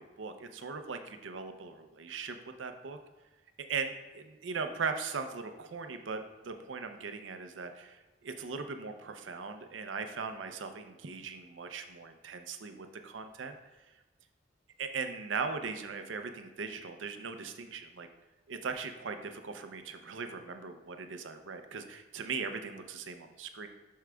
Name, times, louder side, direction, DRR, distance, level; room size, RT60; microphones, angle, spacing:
voice 1, 0.0-3.0 3.6-13.6 14.8-18.1 18.5-23.7, right 5 dB, 85° right, 7 dB, 0.6 m, -39 dB
11.0 x 4.6 x 2.3 m, 1.1 s
head